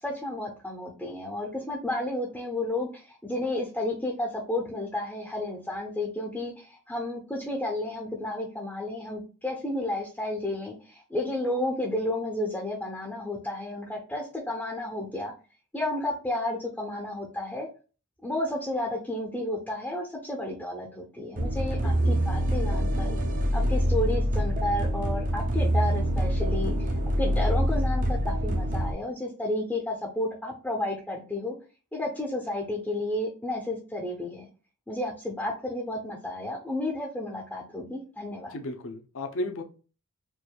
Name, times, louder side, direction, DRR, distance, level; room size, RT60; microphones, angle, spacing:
voice 1, 0.0-15.3 15.7-17.7 18.2-23.2 23.5-31.5 31.9-34.5 34.9-38.6, left 1 dB, 5° left, 0 dB, 0.6 m, -32 dB
sound 1, 21.4-28.9, equal, 40° right, 0.7 m, -25 dB
voice 2, 21.7-22.1 38.5-39.6, left 1 dB, 65° left, 5 dB, 0.7 m, -34 dB
4.5 x 2.5 x 2.2 m, 0.35 s
head